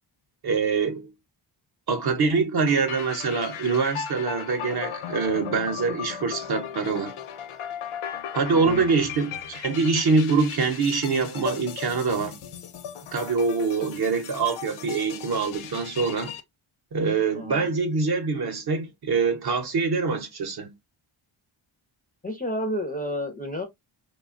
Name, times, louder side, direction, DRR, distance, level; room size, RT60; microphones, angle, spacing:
voice 1, 0.4-1.1 1.9-7.1 8.3-12.4 13.1-16.3 16.9-20.7, right 4 dB, 50° right, 0.7 m, -24 dB
sound 1, 2.7-16.4, left 8 dB, 85° left, 0.6 m, -37 dB
voice 2, 8.5-8.9 17.4-17.7 22.2-23.6, left 1 dB, 20° left, 0.4 m, -31 dB
3.1 x 2.2 x 2.4 m
wide cardioid pair, 150°, 48 cm